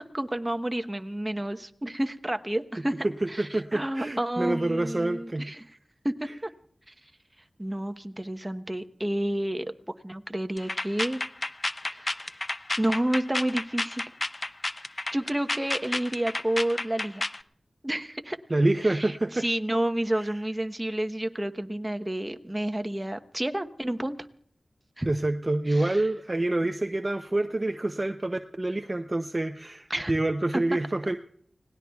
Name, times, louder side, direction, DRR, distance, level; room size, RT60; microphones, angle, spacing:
voice 1, 0.0-5.8 6.0-6.5 6.9-7.0 7.6-9.7 10.0-11.2 11.9-12.3 12.8-14.1 15.1-17.2 17.8-18.4 18.8-24.2 25.0-25.1 25.7-26.1 29.9-30.1 30.5-30.8, right 1 dB, 20° right, 8 dB, 1.0 m, -30 dB
voice 2, 3.4-5.5 18.5-19.4 25.1-31.2, right 2 dB, 35° right, 7 dB, 0.6 m, -27 dB
neurotic clap, 10.6-17.4, left 2 dB, 40° left, 0.5 m, -31 dB
30.0 x 18.5 x 2.3 m, 0.66 s
wide cardioid pair, 55°, 0 cm